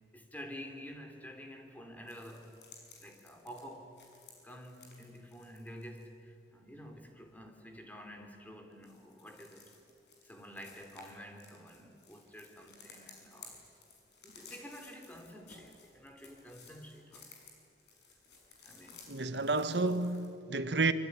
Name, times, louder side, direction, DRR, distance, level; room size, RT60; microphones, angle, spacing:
voice 1, 0.1-2.6 3.0-4.0 4.4-9.8 10.2-13.7 14.2-17.3 18.6-19.2, equal, 10° left, 3.2 m, -49 dB
sound 1, 2.1-6.0 8.7-20.3, left 4 dB, 70° left, 6.4 m, -57 dB
voice 2, 19.1-20.9, right 3 dB, 75° right, 1.5 m, -30 dB
25.5 x 24.0 x 9.7 m
head